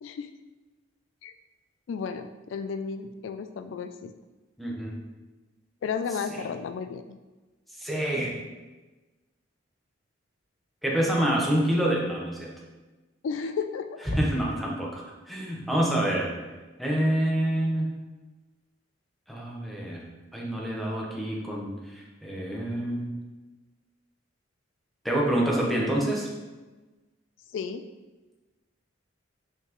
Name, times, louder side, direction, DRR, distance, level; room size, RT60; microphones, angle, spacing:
voice 1, 0.0-0.3 1.2-1.3 1.9-4.1 5.8-7.2 13.2-14.0 27.5-27.8, left 5 dB, 70° left, 9 dB, 0.3 m, -33 dB
voice 2, 4.6-5.0 7.8-8.4 10.8-12.5 14.1-16.3 16.8-17.9 19.3-20.0 20.3-23.1 25.0-26.3, right 1 dB, ahead, -3 dB, 1.1 m, -27 dB
5.7 x 5.4 x 3.1 m, 1.2 s
head